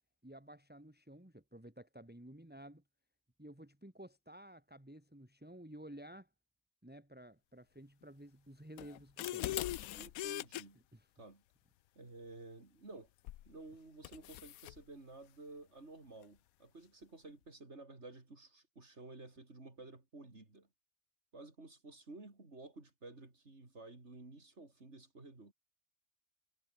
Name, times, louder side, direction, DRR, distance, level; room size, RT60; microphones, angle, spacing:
voice 1, 0.2-2.8 3.4-6.3 6.8-9.5 10.9-11.1, right 1 dB, 5° right, 2.8 m, -53 dB
sound 1, 8.8-10.6 13.3-13.5 14.0-14.8, left 14 dB, 85° left, 1.1 m, -40 dB
voice 2, 10.0-10.8 11.2-11.4 12.0-13.1 13.5-20.7 21.3-25.5, right 2 dB, 50° right, 4.1 m, -53 dB
omnidirectional pair, 1.5 m